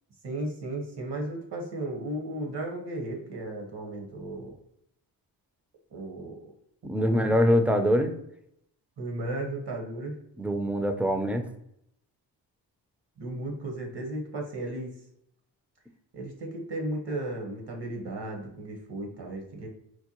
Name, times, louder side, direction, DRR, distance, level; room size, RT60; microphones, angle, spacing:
voice 1, 0.2-4.5 5.9-6.5 7.0-7.3 9.0-10.2 13.2-14.9 16.1-19.7, right 1 dB, 60° right, 2 dB, 1.3 m, -35 dB
voice 2, 6.8-8.1 10.4-11.4, equal, 5° right, 7 dB, 0.5 m, -24 dB
4.5 x 2.2 x 2.9 m, 0.74 s
cardioid pair, 55°, 45 cm